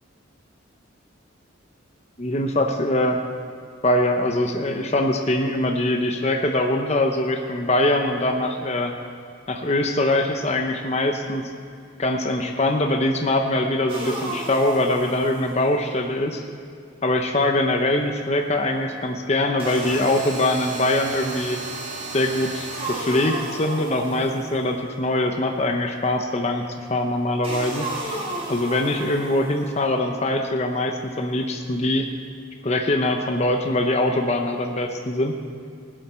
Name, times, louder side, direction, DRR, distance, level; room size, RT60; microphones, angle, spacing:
voice 1, 2.2-3.2 3.8-8.9 9.5-11.5 12.0-16.4 17.0-21.6 22.1-28.2 28.5-32.1 32.6-35.3, left 1 dB, 35° left, 3 dB, 0.8 m, -23 dB
sound 1, 13.9-15.9 19.6-24.9 27.4-29.8, right 2 dB, 30° right, 2.7 m, -33 dB
20.0 x 8.1 x 4.4 m, 2.4 s
head